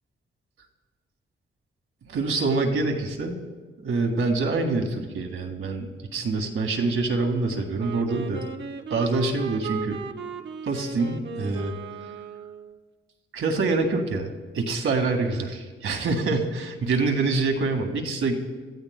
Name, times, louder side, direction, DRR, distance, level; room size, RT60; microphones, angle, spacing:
voice 1, 2.0-3.4 3.8-8.4 8.9-10.0 10.6-11.8 13.3-18.3, right 3 dB, 75° right, 4 dB, 1.8 m, -26 dB
Wind instrument woodwind instrument, 7.8-12.8, right 5 dB, 60° right, 0.9 m, -37 dB
25.0 x 14.5 x 2.2 m, 1.3 s
cardioid pair, 95°, 21 cm